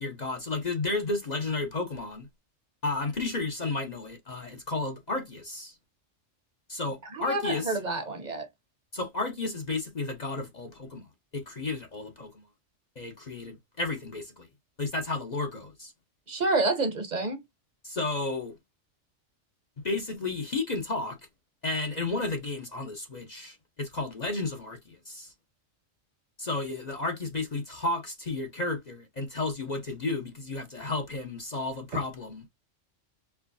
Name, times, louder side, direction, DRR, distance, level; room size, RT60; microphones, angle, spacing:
voice 1, 0.0-2.3 2.8-5.7 6.7-7.8 8.9-11.0 11.3-12.4 13.0-14.5 14.8-15.9 17.8-18.5 19.8-21.2 21.6-25.3 26.4-32.5, left 3 dB, 40° left, 0.7 m, -32 dB
voice 2, 7.1-8.5 16.3-17.4, right 2 dB, 40° right, 0.9 m, -28 dB
4.5 x 3.0 x 2.6 m
omnidirectional pair, 1.3 m